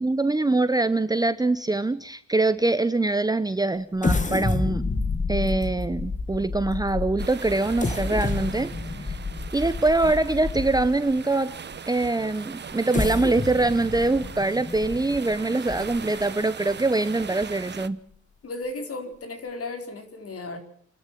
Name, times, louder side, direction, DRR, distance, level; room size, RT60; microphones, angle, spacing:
voice 1, 0.0-4.8 5.3-8.7 9.5-11.6 11.9-18.0, right 2 dB, 15° right, 13 dB, 0.9 m, -24 dB
sound 1, 4.0-11.1 11.7-11.8 12.7-16.2 16.7-16.8 17.2-17.4, left 3 dB, 25° left, 2.1 m, -29 dB
sound 2, 7.2-17.9, right 7 dB, 35° right, 1.0 m, -40 dB
voice 2, 18.4-20.6, left 2 dB, 50° left, 6 dB, 4.5 m, -34 dB
28.5 x 12.5 x 7.5 m, 0.65 s
cardioid pair, 90°, 30 cm